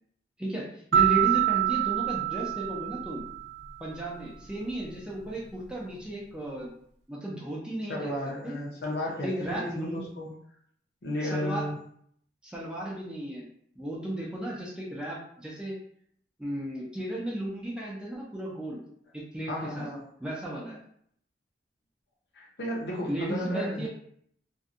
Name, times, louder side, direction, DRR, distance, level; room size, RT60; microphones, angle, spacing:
voice 1, 0.4-3.2 3.8-6.7 7.1-8.1 8.4-8.5 9.2-10.0 11.2-11.7 12.4-13.4 13.8-15.7 16.4-18.8 19.1-19.9 20.2-20.8 23.1-23.9, right 1 dB, 5° right, -5 dB, 0.5 m, -34 dB
sound 1, 0.9-3.7, right 12 dB, 70° right, 0.3 m, -26 dB
voice 2, 7.9-10.3 11.0-11.8 19.5-20.0 22.3-23.9, left 1 dB, 70° left, -2 dB, 0.7 m, -33 dB
2.6 x 2.2 x 2.5 m, 0.66 s
head